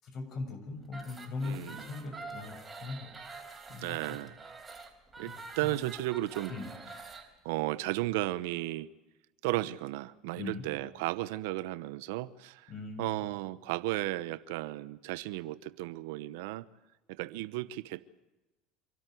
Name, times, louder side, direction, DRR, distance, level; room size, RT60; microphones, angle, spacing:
voice 1, 0.0-3.1 3.7-4.2 5.3-5.8 6.5-6.7 10.3-10.6 12.7-13.3, left 3 dB, 50° left, 6.8 m, -40 dB
sound 1, 0.8-7.3, right 3 dB, 20° right, 4.7 m, -47 dB
voice 2, 1.4-1.8 3.8-4.4 5.2-6.5 7.4-8.9 9.4-12.7 13.0-16.6 17.1-18.1, right 17 dB, 75° right, 0.9 m, -34 dB
27.0 x 13.0 x 9.4 m
hypercardioid pair, 90°, 0 cm